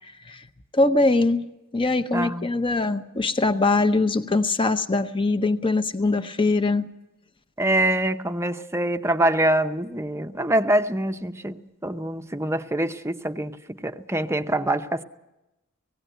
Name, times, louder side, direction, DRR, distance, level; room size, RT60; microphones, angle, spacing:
voice 1, 0.7-1.4 1.7-6.8, left 2 dB, 25° left, 9 dB, 0.8 m, -22 dB
voice 2, 2.1-2.5 7.6-15.0, right 1 dB, 10° right, 9 dB, 0.7 m, -25 dB
18.5 x 16.5 x 9.2 m, 0.97 s
head